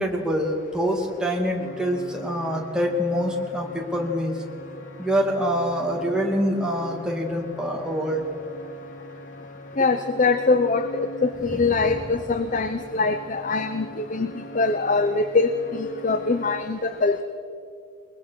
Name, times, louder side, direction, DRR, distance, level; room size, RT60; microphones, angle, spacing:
voice 1, 0.0-4.4 5.0-8.3 11.5-12.0 14.2-14.3, equal, 5° right, 0 dB, 2.4 m, -25 dB
sound 1, 1.6-16.6, equal, 90° left, 1.9 m, -42 dB
voice 2, 9.8-17.2, left 3 dB, 40° left, 10 dB, 0.7 m, -23 dB
22.0 x 20.5 x 6.4 m, 2.5 s
head